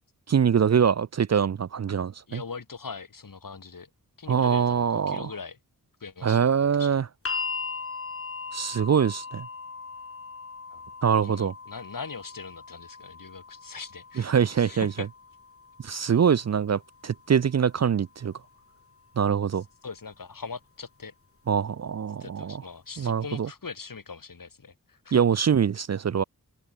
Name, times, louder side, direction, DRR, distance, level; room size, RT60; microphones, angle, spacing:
voice 1, 0.3-2.4 4.3-5.3 6.2-7.0 8.5-9.5 11.0-11.5 14.2-14.9 15.8-18.3 19.2-19.6 21.5-22.6 23.0-23.5 25.1-26.2, right 7 dB, 45° right, 0.5 m, -24 dB
voice 2, 2.3-3.9 4.2-5.6 6.0-6.5 6.8-7.0 10.7-10.8 11.2-15.1 15.9-16.1 19.8-21.1 22.2-25.2, left 5 dB, 60° left, 3.0 m, -41 dB
sound 1, 7.2-19.3 20.4-20.5, left 4 dB, 40° left, 1.2 m, -40 dB
open air
cardioid pair, 50°, 36 cm